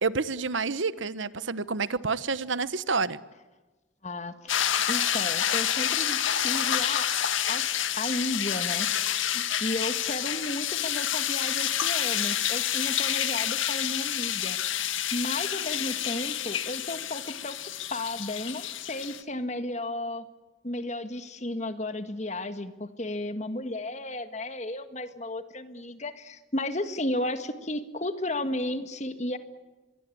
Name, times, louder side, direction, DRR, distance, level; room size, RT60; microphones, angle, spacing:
voice 1, 0.0-3.2, right 4 dB, 75° right, 16 dB, 1.0 m, -29 dB
voice 2, 4.0-7.1 7.5-14.6 15.1-17.6 17.9-20.2 20.6-29.4, left 1 dB, 35° left, 10 dB, 1.7 m, -34 dB
sound 1, 4.5-19.2, left 10 dB, 80° left, 1.8 m, -28 dB
25.5 x 22.5 x 8.5 m, 1.2 s
head